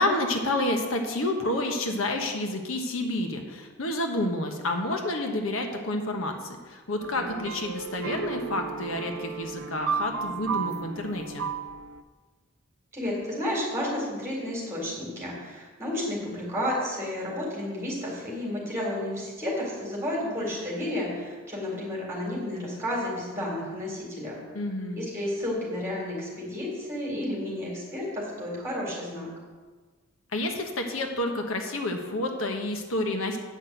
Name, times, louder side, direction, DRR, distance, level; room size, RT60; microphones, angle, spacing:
voice 1, 0.0-11.5 24.5-25.0 30.3-33.4, left 1 dB, 70° left, 4 dB, 1.2 m, -29 dB
sound 1, 7.0-12.0, right 5 dB, 85° right, 0.6 m, -33 dB
voice 2, 12.9-24.4 25.0-29.3, left 1 dB, 15° right, -4 dB, 3.8 m, -31 dB
8.9 x 5.9 x 7.8 m, 1.4 s
head